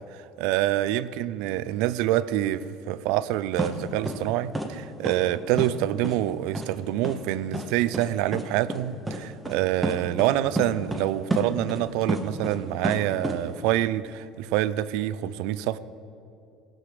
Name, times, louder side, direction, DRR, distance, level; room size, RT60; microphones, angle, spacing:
voice 1, 0.0-15.8, right 13 dB, 65° right, 17 dB, 0.4 m, -26 dB
sound 1, 3.6-3.7 4.1-4.2 4.5-4.7 5.0-5.2 5.6-5.7 6.0-6.2 6.5-6.7 7.0-7.2 7.5-7.7 7.9-8.1 8.3-8.4 8.7-8.8 9.1-9.2 9.5-9.6 9.8-10.3 10.6-11.0 11.3-12.6 12.8-13.4, right 1 dB, 5° right, 0.8 m, -29 dB
16.5 x 6.4 x 5.0 m, 2.6 s
cardioid pair, 170°, 0 cm